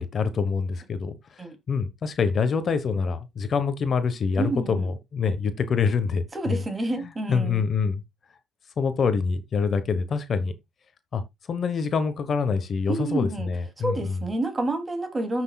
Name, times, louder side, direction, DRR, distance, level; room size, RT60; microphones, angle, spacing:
voice 1, 0.0-1.4 1.7-6.6 7.3-8.0 8.8-10.5 11.1-11.2 11.5-14.2, left 5 dB, 50° left, 1.1 m, -25 dB
voice 2, 4.4-4.9 6.3-7.6 12.9-13.5 13.8-15.4, right 2 dB, 25° right, 2.8 m, -29 dB
14.5 x 6.2 x 2.4 m
cardioid pair, 90°, 0 cm